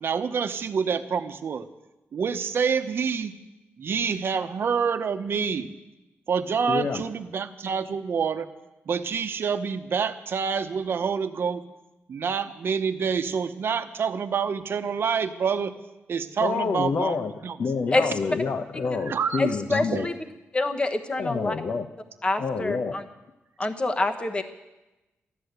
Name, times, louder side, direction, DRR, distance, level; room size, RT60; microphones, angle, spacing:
voice 1, 0.0-1.7 2.1-3.3 3.8-5.7 6.3-8.5 8.9-11.6 12.1-15.7 16.1-17.2 17.4-17.6 19.1-19.4 19.7-20.0, right 6 dB, 60° right, 9 dB, 1.0 m, -27 dB
voice 2, 6.7-7.1 16.4-17.3 17.6-20.1 21.2-21.9 22.4-23.0, left 5 dB, 60° left, 5 dB, 0.9 m, -28 dB
voice 3, 19.4-20.2 20.5-21.5 22.2-23.0 23.6-24.4, left 2 dB, 25° left, 6 dB, 1.1 m, -26 dB
15.0 x 12.0 x 8.1 m, 1.0 s
wide cardioid pair, 125°, 4 cm